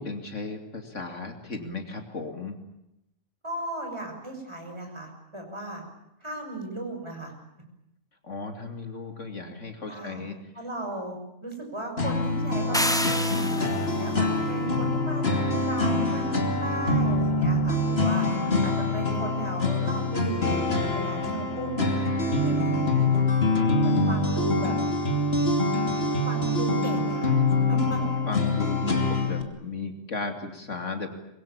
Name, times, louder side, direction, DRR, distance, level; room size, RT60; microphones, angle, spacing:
voice 1, 0.0-2.6 8.2-10.4 18.0-18.6 18.9-19.0 24.1-24.6 27.1-27.2 28.0-31.3, left 3 dB, 65° left, 5 dB, 3.0 m, -35 dB
voice 2, 3.4-5.8 6.2-7.3 9.9-10.2 10.6-16.3 16.6-18.3 18.6-23.2 23.8-24.8 26.3-27.3 27.7-28.0, right 2 dB, 20° right, 3 dB, 6.4 m, -36 dB
sound 1, 12.0-29.4, left 2 dB, 50° left, 3.1 m, -25 dB
sound 2, 12.7-14.0, equal, 5° left, 1.0 m, -28 dB
25.0 x 22.5 x 8.8 m, 0.85 s
omnidirectional pair, 1.4 m